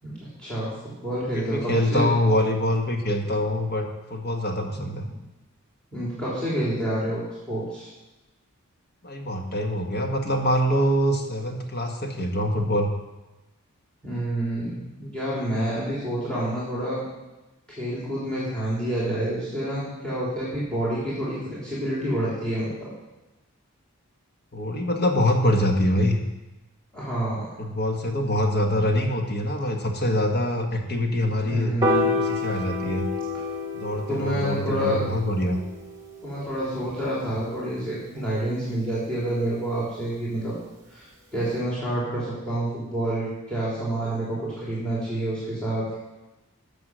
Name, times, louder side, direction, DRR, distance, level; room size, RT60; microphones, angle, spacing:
voice 1, 0.0-2.1 4.7-4.9 5.9-7.2 7.5-7.9 14.0-17.0 17.7-22.9 26.9-27.5 31.4-32.1 34.1-35.0 36.2-40.6 40.9-41.1 41.3-46.0, right 1 dB, 5° left, -8 dB, 3.6 m, -28 dB
voice 2, 1.3-5.1 9.0-12.9 24.5-26.2 27.6-31.8 32.1-33.1 33.7-35.6, left 1 dB, 45° left, 3 dB, 1.5 m, -24 dB
Piano, 31.8-38.1, left 2 dB, 15° right, 2.0 m, -30 dB
13.0 x 7.2 x 6.4 m, 1.0 s
head